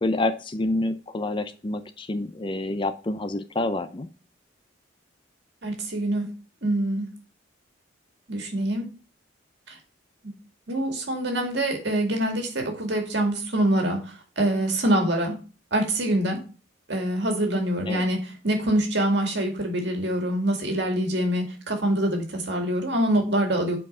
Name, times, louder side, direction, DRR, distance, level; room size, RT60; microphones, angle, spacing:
voice 1, 0.0-4.1 17.9-18.0, left 2 dB, 25° left, 10 dB, 0.5 m, -28 dB
voice 2, 5.6-6.3 6.6-7.1 8.3-8.9 9.7-9.8 10.7-15.4 15.7-16.4 16.9-23.8, right 1 dB, 60° right, 3 dB, 2.2 m, -25 dB
7.5 x 4.6 x 5.4 m, 0.35 s
head